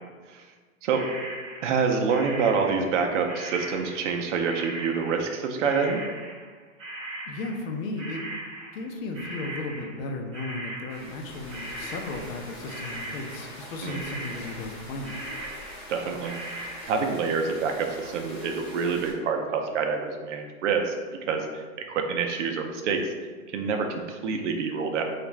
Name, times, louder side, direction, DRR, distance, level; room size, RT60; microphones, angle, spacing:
sound 1, 0.9-3.0 3.3-10.1 10.3-13.6 13.9-14.8 15.0-16.8, right 1 dB, 15° right, 0.5 m, -39 dB
voice 1, 1.6-6.0 13.8-14.0 15.9-21.0 21.2-23.1 23.5-25.0, right 5 dB, 60° right, 3 dB, 0.5 m, -27 dB
voice 2, 7.3-8.3 8.7-15.2, left 2 dB, 70° left, 3 dB, 0.7 m, -35 dB
sound 2, 10.9-19.1, left 1 dB, 15° left, 0.8 m, -44 dB
3.4 x 2.5 x 3.1 m, 1.5 s
supercardioid pair, 155°, 41 cm